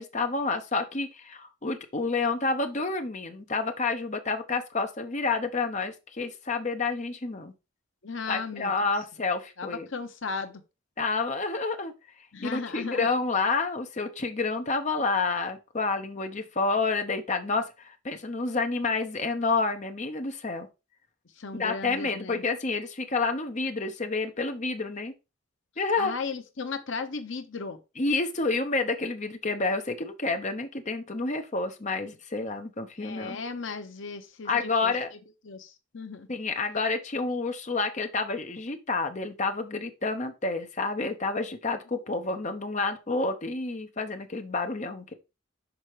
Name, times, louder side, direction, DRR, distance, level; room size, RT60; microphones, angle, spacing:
voice 1, 0.0-7.5 8.3-9.9 11.0-11.9 12.4-20.7 21.6-25.1 25.8-26.1 28.0-33.4 34.4-35.1 36.3-45.1, left 3 dB, 35° left, 0.9 m, -29 dB
voice 2, 8.0-8.7 9.6-10.6 12.3-13.1 21.4-22.4 26.0-27.8 33.0-34.9 35.4-36.3, left 4 dB, 65° left, 0.9 m, -36 dB
6.2 x 4.4 x 4.9 m
head